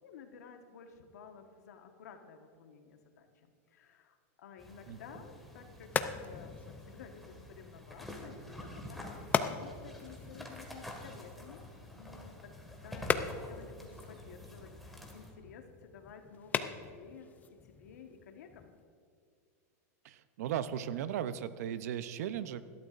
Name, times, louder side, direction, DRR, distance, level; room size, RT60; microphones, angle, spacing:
voice 1, 0.0-5.9 6.2-17.3 17.6-18.7, left 6 dB, 85° left, 4 dB, 1.4 m, -53 dB
sound 1, 4.6-15.3, left 1 dB, ahead, 1.8 m, -48 dB
sound 2, 5.4-18.8, left 6 dB, 20° left, 0.5 m, -40 dB
voice 2, 20.0-22.6, right 9 dB, 75° right, 13 dB, 0.7 m, -36 dB
18.0 x 12.5 x 2.6 m, 2.2 s
supercardioid pair, 140°, 9 cm